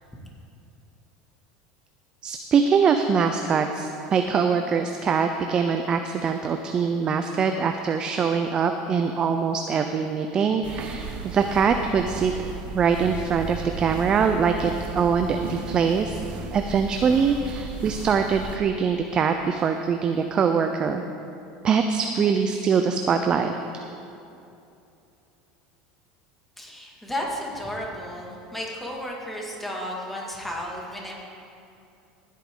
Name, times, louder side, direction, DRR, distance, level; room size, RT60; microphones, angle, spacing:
voice 1, 2.2-12.3 12.7-16.2 16.5-21.0 21.6-23.5, right 6 dB, 30° right, 6 dB, 0.5 m, -23 dB
sound 1, 10.6-18.6, right 5 dB, 50° right, 1.0 m, -35 dB
voice 2, 26.6-31.2, equal, 5° left, -2 dB, 2.1 m, -33 dB
15.5 x 8.4 x 3.8 m, 2.7 s
supercardioid pair, 115°, 3 cm